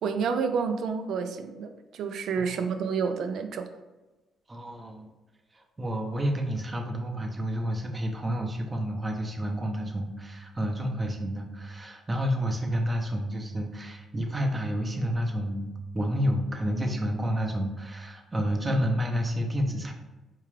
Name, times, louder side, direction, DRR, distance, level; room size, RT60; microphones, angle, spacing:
voice 1, 0.0-3.7, right 5 dB, 75° right, 7 dB, 0.4 m, -29 dB
voice 2, 4.5-5.1 5.5-19.9, equal, 20° right, 2 dB, 0.7 m, -30 dB
4.5 x 2.4 x 3.1 m, 1.1 s
cardioid pair, 90°, 0 cm